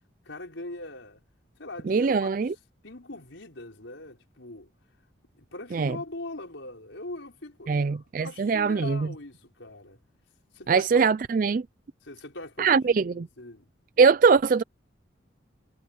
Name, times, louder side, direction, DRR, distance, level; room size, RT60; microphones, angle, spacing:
voice 1, 0.2-1.2 1.6-2.3 2.8-4.7 5.4-10.0 10.5-11.0 12.0-13.7, left 2 dB, 80° left, 4.9 m, -41 dB
voice 2, 1.9-2.5 5.7-6.0 7.7-9.1 10.7-11.6 12.6-13.3 14.0-14.6, right 5 dB, 45° right, 0.3 m, -22 dB
head